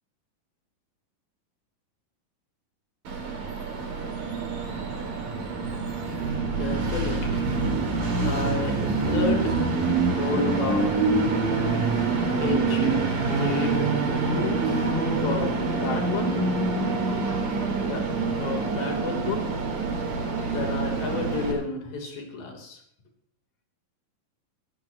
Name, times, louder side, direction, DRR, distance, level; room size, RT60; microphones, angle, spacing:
Train, 3.1-21.5, right 3 dB, 75° right, 5.8 m, -26 dB
voice 1, 6.5-7.6 8.2-9.6 10.1-11.1 12.4-13.0 13.4-13.9 14.3-14.9 15.2-16.5 17.8-19.6 20.4-22.8, left 3 dB, 90° left, 1 dB, 5.3 m, -31 dB
20.5 x 15.0 x 3.0 m, 0.64 s
omnidirectional pair, 3.9 m